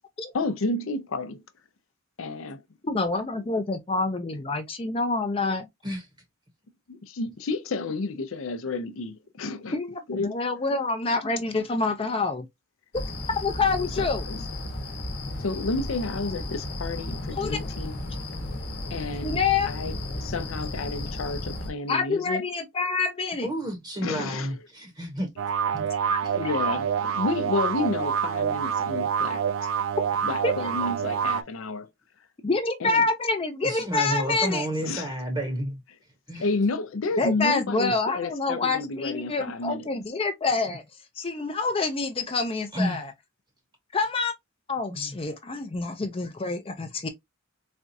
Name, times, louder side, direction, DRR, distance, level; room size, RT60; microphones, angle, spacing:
voice 1, 0.3-1.4 2.2-2.6 6.9-9.8 10.1-10.4 14.0-14.4 15.4-18.0 18.9-19.4 19.6-22.4 24.0-24.6 26.2-26.9 27.1-29.4 30.2-31.8 32.8-33.1 34.8-35.1 36.4-39.9, left 3 dB, 80° left, 0.6 m, -31 dB
voice 2, 2.8-5.7 9.7-12.5 13.4-14.3 17.4-17.7 19.2-19.7 21.9-23.5 26.1-26.2 30.1-30.7 32.4-34.7 37.2-40.8 41.2-43.1 43.9-44.3 44.7-47.1, left 3 dB, 30° left, 0.5 m, -27 dB
sound 1, 12.9-21.7, left 1 dB, 50° left, 1.0 m, -34 dB
voice 3, 23.4-25.3 25.7-25.9 26.2-26.3 33.6-35.8 36.3-36.5 42.7-43.0 44.9-45.1, right 1 dB, 25° right, 0.9 m, -31 dB
sound 2, 25.4-31.4, right 7 dB, 70° right, 0.3 m, -27 dB
4.2 x 2.4 x 2.6 m
head